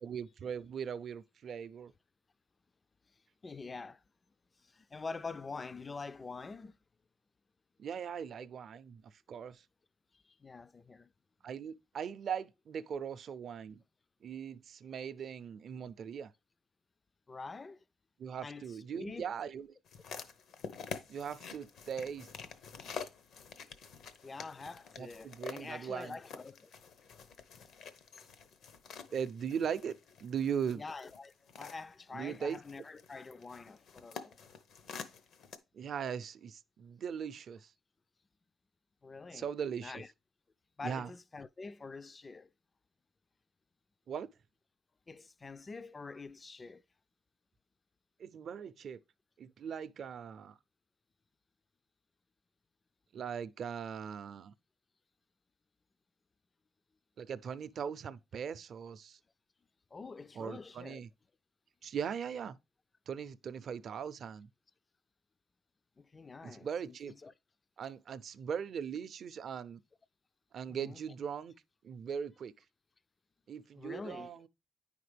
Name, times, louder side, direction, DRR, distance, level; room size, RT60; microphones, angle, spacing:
voice 1, 0.0-1.9 7.8-9.0 9.3-9.6 11.4-13.8 14.2-16.3 18.2-19.7 21.1-22.3 25.0-26.2 29.1-29.9 30.2-30.8 32.1-32.6 35.7-37.7 39.3-39.9 40.8-41.1 44.1-44.3 48.2-49.0 49.4-50.6 53.1-54.5 57.2-59.2 60.4-61.1 61.8-62.6 63.1-64.5 66.4-67.1 67.8-69.8 70.5-71.5 71.8-72.5 73.5-74.5, right 7 dB, 60° right, 0.5 m, -39 dB
voice 2, 3.4-4.0 4.6-6.8 10.2-11.1 17.3-17.8 18.4-19.3 24.2-26.7 30.7-34.4 39.0-39.5 39.8-40.1 40.8-42.5 45.1-46.8 59.9-61.0 66.0-67.3 70.7-71.0 73.8-74.3, left 4 dB, 30° left, 0.3 m, -46 dB
sound 1, 19.8-35.6, left 6 dB, 75° left, 0.8 m, -48 dB
9.3 x 5.0 x 3.3 m
cardioid pair, 90°, 0 cm